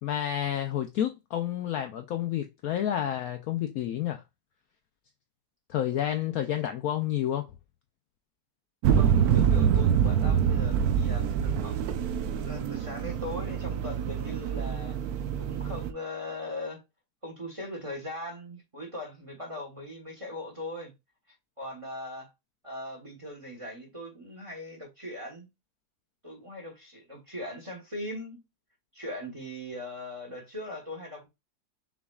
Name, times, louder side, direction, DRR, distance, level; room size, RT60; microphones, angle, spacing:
voice 1, 0.0-4.2 5.7-7.5, left 11 dB, 70° left, 0.8 m, -30 dB
sound 1, 8.8-15.9, right 8 dB, 70° right, 0.9 m, -26 dB
voice 2, 8.9-11.8 12.2-15.0 15.4-16.8 17.2-20.9 21.6-22.3 22.6-25.5 26.2-28.4 28.9-31.3, left 1 dB, 20° right, 1.1 m, -40 dB
6.0 x 3.4 x 2.3 m
omnidirectional pair, 1.9 m